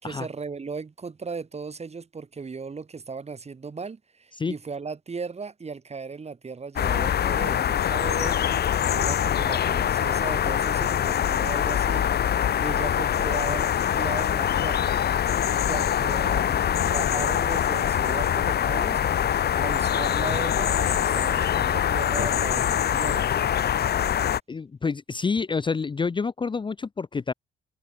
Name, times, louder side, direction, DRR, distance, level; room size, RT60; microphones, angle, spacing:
voice 1, 0.0-8.4 8.9-12.1 12.6-14.9 15.4-19.0 19.6-23.3, right 5 dB, 30° right, 4.0 m, -36 dB
sound 1, 6.8-24.4, left 9 dB, 55° left, 1.1 m, -24 dB
voice 2, 24.5-27.3, left 5 dB, 25° left, 0.7 m, -28 dB
cardioid pair, 90°, 20 cm